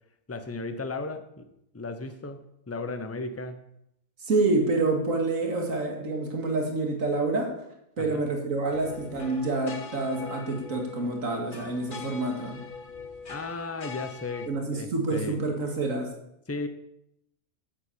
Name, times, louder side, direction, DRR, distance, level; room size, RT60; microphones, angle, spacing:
voice 1, 0.3-1.4 1.7-3.6 8.0-8.3 13.3-15.4 16.5-16.7, left 3 dB, 15° left, 9 dB, 0.8 m, -35 dB
voice 2, 4.2-7.5 8.0-12.6 14.5-16.1, right 3 dB, 75° right, 2 dB, 2.5 m, -27 dB
sound 1, 8.7-14.5, left 5 dB, 40° left, 1.2 m, -42 dB
8.6 x 8.0 x 8.6 m, 0.80 s
omnidirectional pair, 1.4 m